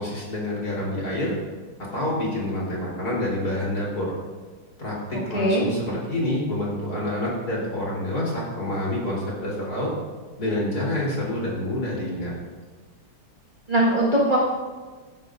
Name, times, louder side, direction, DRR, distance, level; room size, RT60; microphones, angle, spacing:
voice 1, 0.0-1.3 1.9-4.1 4.8-9.9 10.4-12.3, left 1 dB, 45° left, -5 dB, 4.3 m, -27 dB
voice 2, 5.1-5.7 13.7-14.4, right 1 dB, 25° right, -6 dB, 1.7 m, -21 dB
15.5 x 11.0 x 2.6 m, 1.4 s
omnidirectional pair, 2.3 m